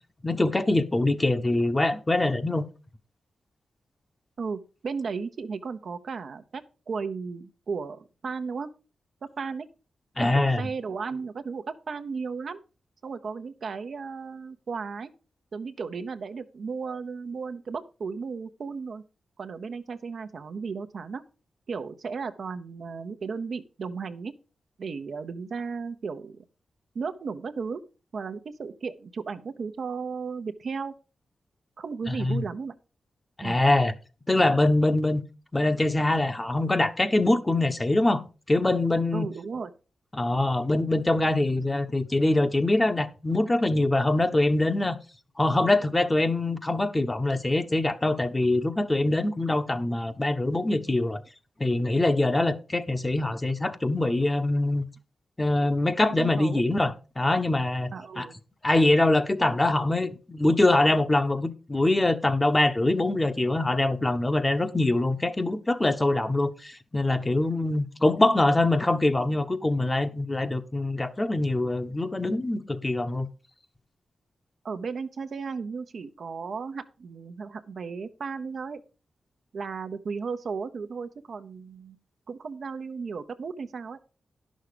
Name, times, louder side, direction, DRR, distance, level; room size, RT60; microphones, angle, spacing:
voice 1, 0.2-2.6 10.2-10.6 32.1-32.5 33.4-33.9 34.3-35.2 35.5-39.3 40.1-45.0 45.4-51.2 51.6-54.8 55.4-58.3 58.6-73.3, left 2 dB, 25° left, 1.2 m, -24 dB
voice 2, 4.4-8.7 9.4-9.7 10.2-12.6 13.0-15.1 15.5-19.0 19.4-21.2 21.7-24.3 24.8-26.4 26.9-27.8 28.1-30.9 31.8-32.7 33.4-33.6 39.1-39.7 56.2-56.6 57.9-58.4 74.6-78.8 79.5-82.0 82.3-84.0, right 5 dB, 65° right, 0.8 m, -35 dB
10.5 x 6.4 x 5.0 m
supercardioid pair, 45°, 0 cm